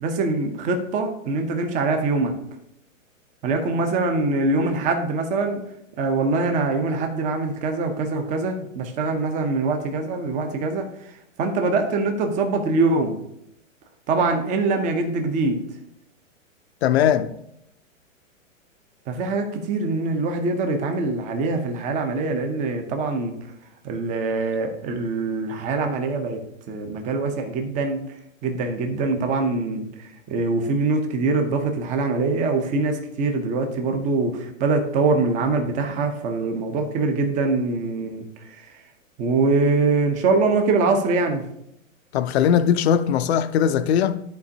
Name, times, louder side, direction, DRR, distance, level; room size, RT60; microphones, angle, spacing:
voice 1, 0.0-2.3 3.4-5.6 6.0-10.9 11.4-13.1 14.1-15.6 19.1-23.3 23.8-26.4 26.7-28.0 28.4-38.2 38.5-38.6 39.2-41.4, right 3 dB, 20° right, 0.7 m, -23 dB
voice 2, 16.8-17.3 42.1-44.2, left 9 dB, 55° left, 0.6 m, -20 dB
12.5 x 4.3 x 2.8 m
hypercardioid pair, 140°, 39 cm